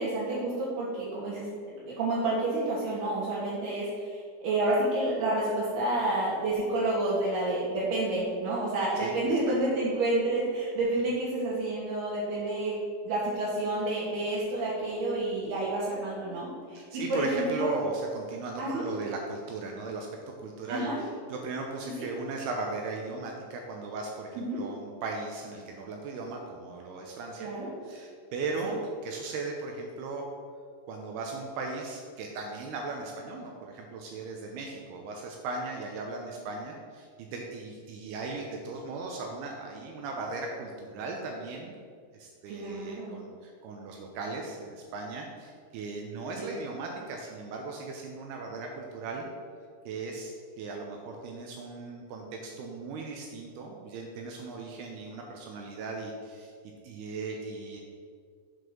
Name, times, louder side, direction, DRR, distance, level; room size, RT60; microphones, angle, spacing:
voice 1, 0.0-12.8 13.0-17.7 18.6-18.8 20.7-20.9 22.0-22.1 24.4-24.6 27.4-27.7 28.6-28.7 42.5-43.2, right 2 dB, 65° right, -9 dB, 3.2 m, -29 dB
voice 2, 9.0-9.5 16.8-20.1 20.4-27.5 27.8-30.3 30.9-41.8 42.1-49.3 49.9-56.5 56.8-57.8, right 3 dB, 80° right, 1 dB, 2.3 m, -37 dB
8.1 x 5.0 x 6.0 m, 2.1 s
omnidirectional pair, 5.4 m